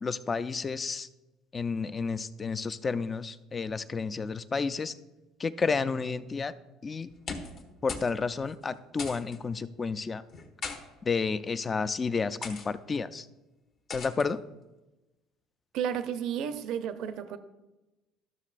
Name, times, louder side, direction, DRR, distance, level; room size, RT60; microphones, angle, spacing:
voice 1, 0.0-1.1 1.5-4.9 5.4-6.5 6.8-7.1 7.8-10.2 11.1-13.3 13.9-14.4, left 4 dB, 25° left, 14 dB, 0.3 m, -31 dB
sound 1, 7.1-7.6 7.9-8.1 8.4-8.5 9.0-9.4 10.3-10.8 11.6-11.8 12.4-12.7 13.9-14.3, left 4 dB, 55° left, 1.1 m, -38 dB
voice 2, 15.7-17.4, right 8 dB, 70° right, 10 dB, 0.5 m, -32 dB
12.5 x 6.5 x 2.5 m, 1.1 s
cardioid pair, 110°, 0 cm